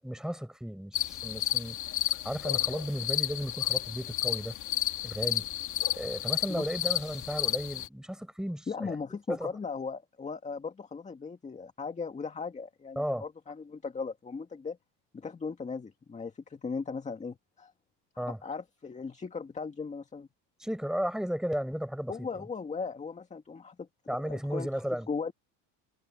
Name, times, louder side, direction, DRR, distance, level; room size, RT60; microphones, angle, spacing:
voice 1, 0.0-1.8 2.2-4.6 5.0-5.5 5.9-9.0 9.3-9.5 13.0-13.2 18.2-18.4 20.6-22.5 24.1-25.1, equal, ahead, 8.0 m, -34 dB
sound 1, 0.9-7.9, left 13 dB, 55° left, 3.2 m, -32 dB
voice 2, 6.5-7.0 8.7-14.8 15.1-17.7 18.2-20.3 22.1-23.9 24.3-24.7 25.1-25.3, left 5 dB, 20° left, 2.0 m, -38 dB
cardioid pair, 115°, 35 cm